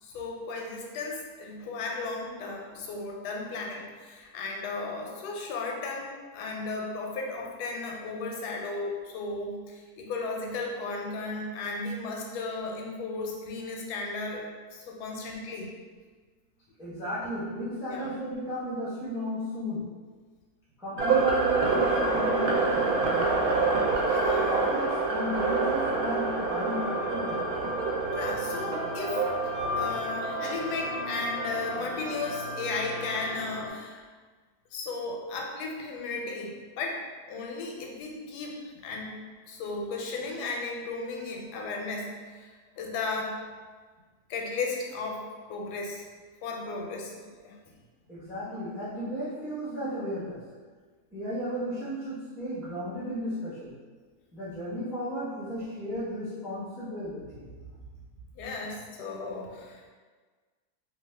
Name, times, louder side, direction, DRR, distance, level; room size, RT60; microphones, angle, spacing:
voice 1, 0.0-14.4 14.7-15.7 17.9-18.2 24.1-24.6 28.1-29.2 29.8-34.0 34.7-37.0 37.3-39.1 39.5-42.5 42.8-43.4 44.3-45.2 45.5-46.1 46.4-47.5 58.4-59.9, left 3 dB, 90° left, 0 dB, 1.1 m, -35 dB
voice 2, 16.8-19.8 20.8-23.8 24.5-27.4 48.1-50.4 51.1-53.7 54.3-57.5 57.9-58.0, equal, 5° right, -9 dB, 0.3 m, -34 dB
sound 1, 21.0-33.7, right 3 dB, 75° right, 1.0 m, -28 dB
2.6 x 2.3 x 3.2 m, 1.5 s
omnidirectional pair, 1.6 m